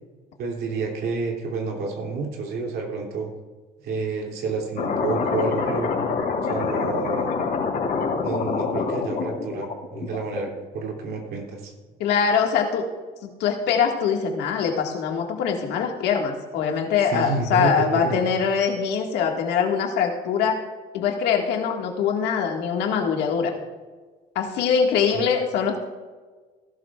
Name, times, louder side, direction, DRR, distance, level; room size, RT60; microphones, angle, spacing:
voice 1, 0.4-3.3 3.8-5.9 6.4-7.3 8.2-11.7 17.1-18.2 25.1-25.2, right 4 dB, 70° right, 0 dB, 2.8 m, -29 dB
sound 1, 4.8-10.6, left 5 dB, 60° left, 3.9 m, -26 dB
voice 2, 12.0-12.9 13.2-20.6 20.9-23.5 24.4-25.8, left 6 dB, 85° left, 2 dB, 1.9 m, -23 dB
18.0 x 12.0 x 2.4 m, 1.4 s
cardioid pair, 110°, 17 cm